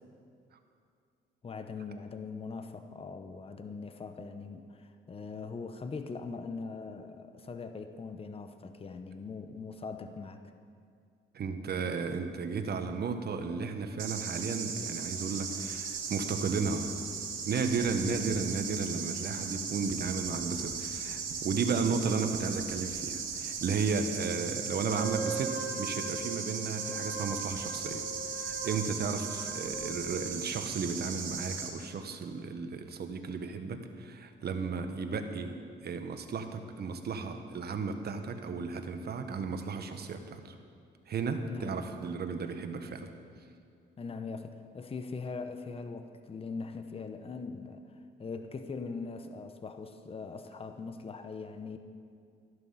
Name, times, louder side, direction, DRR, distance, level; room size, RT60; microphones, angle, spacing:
voice 1, 1.4-10.4 41.5-41.7 44.0-47.8 48.2-51.8, left 4 dB, 30° left, 8 dB, 0.9 m, -41 dB
voice 2, 11.3-16.9 17.4-28.0 28.3-35.5 35.8-40.5 41.1-43.1, right 5 dB, 55° right, 7 dB, 1.3 m, -34 dB
sound 1, 14.0-31.7, right 6 dB, 85° right, 1.8 m, -37 dB
Wind instrument woodwind instrument, 24.8-30.4, right 3 dB, 10° left, 3.7 m, -41 dB
13.5 x 11.0 x 5.7 m, 2.3 s
cardioid pair, 90°, 20 cm